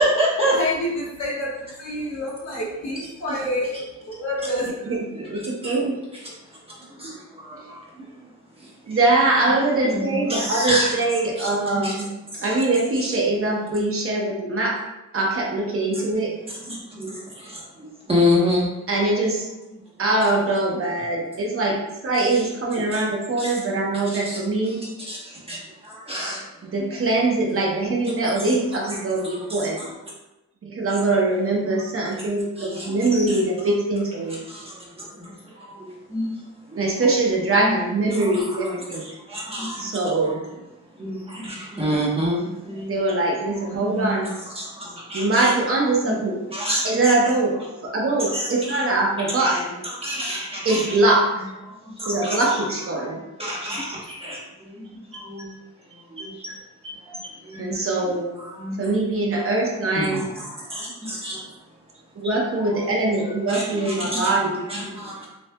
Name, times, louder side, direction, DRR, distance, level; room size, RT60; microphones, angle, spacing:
voice 1, 0.0-0.6 5.6-5.7 6.5-8.3 8.6-9.0 9.8-10.9 11.4-12.0 12.3-12.5 16.7-18.7 22.3-22.4 22.9-23.0 23.4-23.5 24.1-24.4 24.6-24.7 25.1-26.9 29.5-29.9 32.6-33.4 34.5-36.9 37.6-37.7 38.1-38.7 39.0-40.0 40.9-43.0 43.8-44.2 44.6-45.5 46.0-46.9 48.2-48.9 49.4-49.6 50.0-51.0 51.7-52.6 53.0-53.1 53.4-55.5 56.0-56.6 57.0-57.9 58.4-58.8 59.9-61.5 63.5-64.4 64.7-65.3, equal, 20° right, -5 dB, 0.9 m, -28 dB
voice 2, 0.5-3.8 4.1-4.7, left 1 dB, 60° left, -5 dB, 1.3 m, -28 dB
voice 3, 4.9-6.0 7.5-7.7 8.9-12.1 12.4-14.8 15.1-16.4 18.9-19.5 20.0-24.9 26.6-29.8 30.6-34.4 36.8-39.1 39.8-40.4 42.8-44.3 45.1-46.4 46.8-49.8 50.6-51.5 52.1-53.2 57.6-58.3 58.8-60.3 62.1-64.7, right 2 dB, 50° right, -1 dB, 0.7 m, -22 dB
6.4 x 2.3 x 2.2 m, 0.97 s
wide cardioid pair, 170°, 30 cm